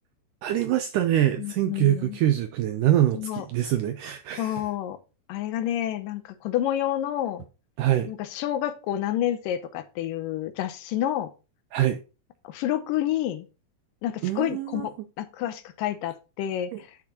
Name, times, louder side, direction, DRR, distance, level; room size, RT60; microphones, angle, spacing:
voice 1, 0.4-4.6 7.8-8.1 11.7-12.0 14.2-15.1 16.7-16.8, right 12 dB, 85° right, 1.8 m, -24 dB
voice 2, 1.4-2.2 3.1-3.5 4.4-5.0 5.3-7.5 8.1-11.3 12.4-13.5 14.0-16.9, left 12 dB, 80° left, 2.2 m, -29 dB
9.8 x 6.5 x 2.9 m
omnidirectional pair, 4.3 m